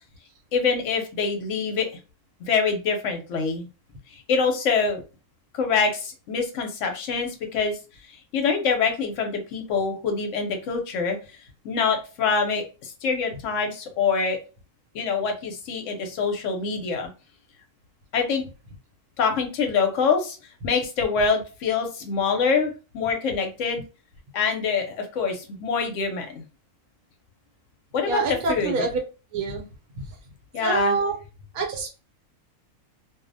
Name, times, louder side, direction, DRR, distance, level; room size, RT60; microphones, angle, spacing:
voice 1, 0.5-1.9 2.5-3.7 4.1-5.0 5.5-7.8 8.3-11.2 11.6-14.4 14.9-17.1 18.1-18.4 19.2-20.4 20.6-23.8 24.3-26.4 27.9-28.9 30.5-31.0, left 5 dB, 65° left, 4 dB, 0.9 m, -25 dB
voice 2, 28.1-29.0 29.3-29.6 30.6-31.2 31.5-31.9, right 3 dB, 85° right, 3 dB, 1.2 m, -25 dB
2.5 x 2.0 x 2.5 m, 0.32 s
omnidirectional pair, 1.5 m